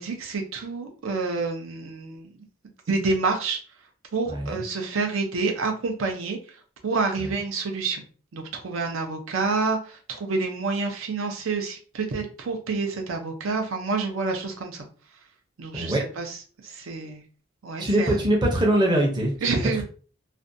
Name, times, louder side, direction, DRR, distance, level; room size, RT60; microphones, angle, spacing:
voice 1, 0.0-2.4 2.9-3.6 4.1-8.0 8.3-14.8 15.6-17.2 17.6-18.2 19.4-19.8, right 4 dB, 80° right, 3 dB, 0.5 m, -28 dB
voice 2, 4.3-4.6 15.7-16.0 17.8-19.8, right 1 dB, 20° right, 0 dB, 0.6 m, -23 dB
2.5 x 2.2 x 2.5 m, 0.39 s
head